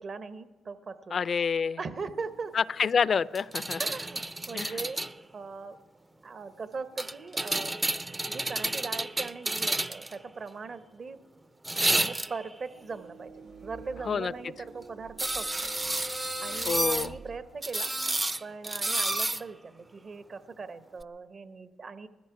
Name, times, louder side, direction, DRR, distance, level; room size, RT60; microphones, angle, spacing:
voice 1, 0.0-1.2 1.8-2.5 3.8-5.0 5.3-5.8 6.2-11.2 11.9-13.3 13.6-15.7 16.1-17.9 18.4-22.1, right 4 dB, 50° right, 12 dB, 1.0 m, -40 dB
voice 2, 1.1-1.8 2.5-3.8 4.5-4.8 14.1-14.3 16.6-17.2, left 6 dB, 50° left, 20 dB, 0.4 m, -27 dB
sound 1, 3.3-5.1 7.0-10.1 11.6-12.5 15.2-17.1 17.6-19.4 21.0-21.1, right 2 dB, 20° right, 0.5 m, -30 dB
sound 2, 12.7-17.4, equal, 90° right, 1.7 m, -46 dB
19.5 x 13.5 x 4.8 m, 1.3 s
supercardioid pair, 65°, 0 cm